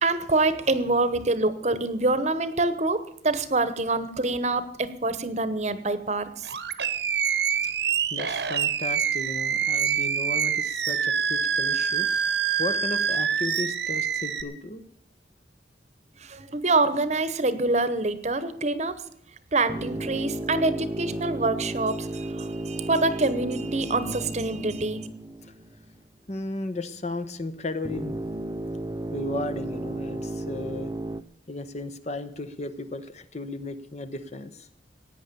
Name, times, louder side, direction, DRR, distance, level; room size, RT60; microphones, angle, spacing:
voice 1, 0.0-6.5 16.2-18.9 19.5-25.1, right 2 dB, 40° right, 13 dB, 1.0 m, -26 dB
Animal, 6.4-14.4, right 7 dB, 70° right, 1.0 m, -26 dB
voice 2, 7.6-12.1 12.6-14.8 26.3-28.2 29.1-30.9 31.5-34.7, left 2 dB, 40° left, 11 dB, 1.0 m, -35 dB
sound 1, 19.7-26.0 27.8-31.2, right 1 dB, 20° right, 0.5 m, -34 dB
16.5 x 9.4 x 6.9 m, 0.71 s
head